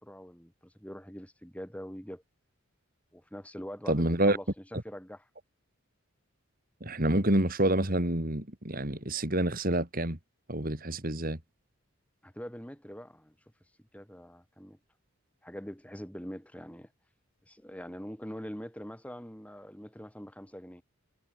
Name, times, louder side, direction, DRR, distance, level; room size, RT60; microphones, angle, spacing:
voice 1, 0.0-2.2 3.1-5.3 12.2-13.3 13.9-14.8 15.4-16.9 17.5-20.8, equal, 5° left, 5.4 m, -43 dB
voice 2, 3.9-4.4 6.8-10.2 10.5-11.4, right 1 dB, 40° right, 3.1 m, -27 dB
head